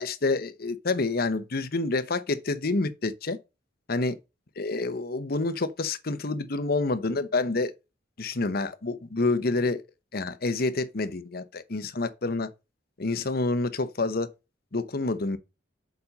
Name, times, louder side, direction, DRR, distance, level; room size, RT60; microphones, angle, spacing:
voice 1, 0.0-3.4 3.9-4.1 4.6-7.7 8.2-9.8 10.1-12.5 13.0-14.3 14.7-15.4, left 3 dB, 55° left, 0.9 m, -28 dB
7.2 x 5.4 x 5.4 m
head